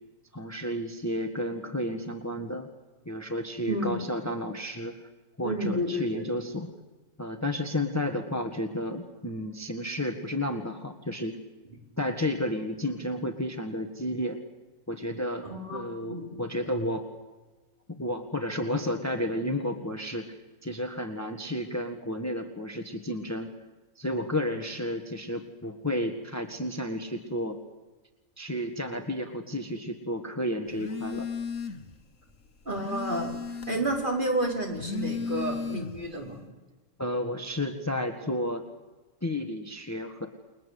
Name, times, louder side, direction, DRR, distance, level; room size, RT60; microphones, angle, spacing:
voice 1, 0.3-2.7 3.0-4.9 5.4-6.7 7.2-11.4 12.0-14.4 14.9-17.1 17.9-20.3 20.6-23.5 23.9-27.6 28.4-31.3 37.0-38.6 39.2-40.3, left 1 dB, 10° left, 6 dB, 1.6 m, -32 dB
voice 2, 5.4-6.3 15.4-16.4 32.6-36.4, right 1 dB, 40° right, 0 dB, 5.1 m, -31 dB
Telephone, 30.7-32.0 32.3-34.0 34.6-36.1, left 5 dB, 75° left, 1.9 m, -35 dB
30.0 x 21.5 x 8.4 m, 1.2 s
omnidirectional pair, 1.4 m